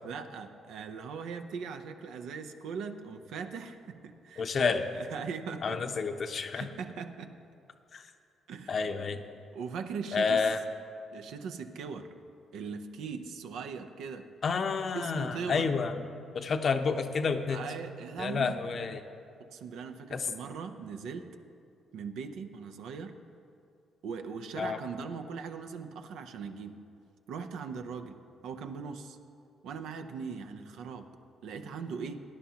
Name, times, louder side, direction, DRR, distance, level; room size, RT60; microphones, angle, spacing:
voice 1, 0.0-5.8 6.5-7.3 8.5-8.8 9.5-10.5 11.1-12.1 12.5-14.3 14.9-15.7 17.5-18.6 19.5-21.3 21.9-23.1 24.0-26.8 27.3-28.2 28.4-29.2 29.6-31.1 31.4-32.2, right 5 dB, 75° right, 7 dB, 0.6 m, -40 dB
voice 2, 4.4-4.8 5.6-6.7 7.9-8.1 8.7-9.2 10.1-10.6 14.4-16.0 16.3-17.7 18.2-19.0 20.1-20.3 24.6-24.8, left 5 dB, 55° left, 7 dB, 0.8 m, -29 dB
17.5 x 10.0 x 2.9 m, 2.5 s
hypercardioid pair, 50°, 0 cm